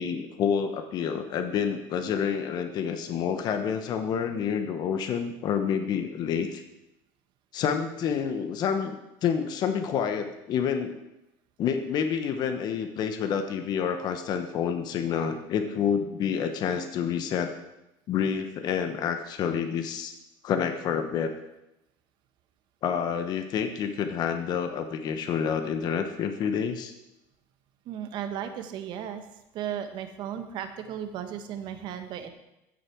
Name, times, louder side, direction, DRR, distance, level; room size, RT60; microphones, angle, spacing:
voice 1, 0.0-6.6 7.5-9.0 9.2-11.0 11.6-17.5 18.1-20.1 20.4-21.3 22.8-26.9, left 7 dB, 45° left, 7 dB, 1.1 m, -28 dB
voice 2, 27.8-29.2 29.5-32.3, right 9 dB, 55° right, 8 dB, 1.3 m, -35 dB
15.0 x 6.7 x 4.7 m, 0.91 s
supercardioid pair, 120°, 10 cm